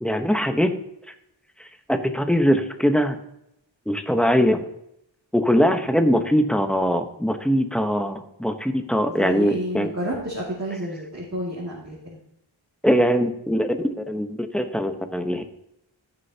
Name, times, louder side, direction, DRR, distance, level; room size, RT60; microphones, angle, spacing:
voice 1, 0.0-0.7 1.9-3.2 3.9-4.6 5.3-9.9 12.8-15.4, equal, ahead, 6 dB, 1.0 m, -21 dB
voice 2, 9.1-12.2, equal, 35° right, -6 dB, 2.4 m, -30 dB
15.5 x 6.8 x 2.9 m, 0.80 s
wide cardioid pair, 50°, 47 cm